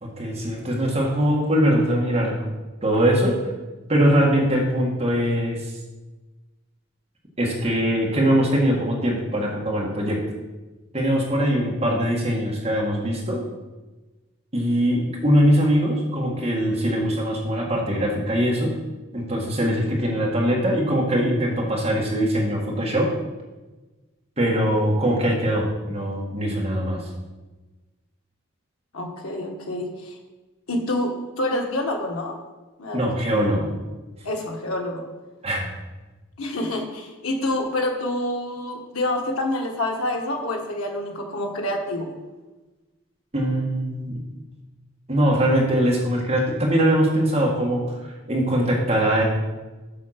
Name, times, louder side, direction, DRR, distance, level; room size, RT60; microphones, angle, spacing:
voice 1, 0.0-2.4 2.8-3.4 3.9-5.7 7.4-10.2 10.9-13.4 14.5-18.7 19.1-23.1 24.4-27.0 32.9-33.7 35.4-35.7 43.3-44.2 45.1-47.8 48.3-49.2, equal, 30° right, -3 dB, 1.7 m, -22 dB
voice 2, 28.9-30.1 30.7-32.4 32.8-33.0 34.2-35.1 36.4-42.1, left 1 dB, 85° left, 2 dB, 1.4 m, -27 dB
7.3 x 5.7 x 5.8 m, 1.2 s
head